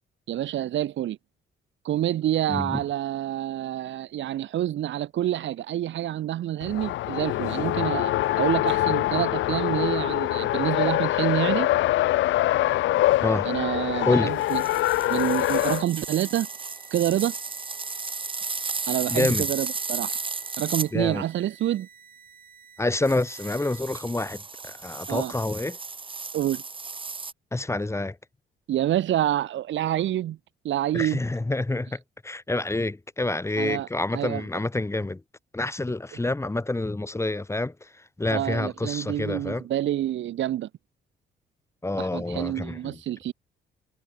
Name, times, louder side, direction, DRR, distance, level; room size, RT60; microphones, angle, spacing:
voice 1, 0.3-1.2 1.8-11.7 13.4-14.6 15.1-16.5 16.9-17.3 18.9-20.2 20.6-21.9 25.1-25.3 26.3-26.6 28.7-30.4 30.6-31.2 33.6-34.5 38.3-40.7 42.0-43.3, right 12 dB, 70° right, 1.0 m, -27 dB
voice 2, 2.5-2.8 13.2-13.5 14.1-14.3 19.1-19.5 20.9-21.2 22.8-25.8 27.5-28.2 30.9-35.2 35.5-37.9 38.2-39.6 41.8-43.0, left 2 dB, 15° left, 1.8 m, -27 dB
Race car auto racing, 6.6-15.8, left 15 dB, 75° left, 0.5 m, -24 dB
sound 1, 14.4-20.9 23.0-27.3, right 4 dB, 25° right, 2.0 m, -34 dB
sound 2, 14.8-23.8, right 6 dB, 45° right, 7.1 m, -52 dB
cardioid pair, 90°, 20 cm